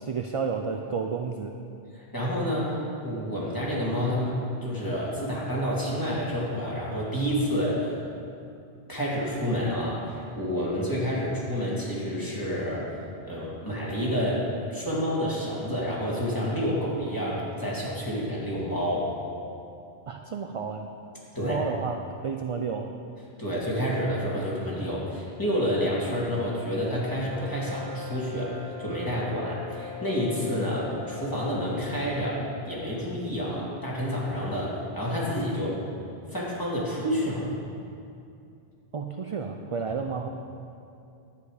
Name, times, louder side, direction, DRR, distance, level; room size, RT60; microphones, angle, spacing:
voice 1, 0.0-1.5 20.1-20.9 21.4-23.0 38.9-40.3, right 5 dB, 50° right, 4 dB, 0.4 m, -31 dB
voice 2, 1.9-8.0 8.9-12.9 13.2-19.1 21.3-21.6 23.4-35.8 36.3-37.5, equal, 20° left, -6 dB, 2.2 m, -29 dB
Brass instrument, 27.2-32.1, left 6 dB, 85° right, 2.3 m, -41 dB
10.5 x 8.6 x 4.9 m, 2.6 s
omnidirectional pair, 1.1 m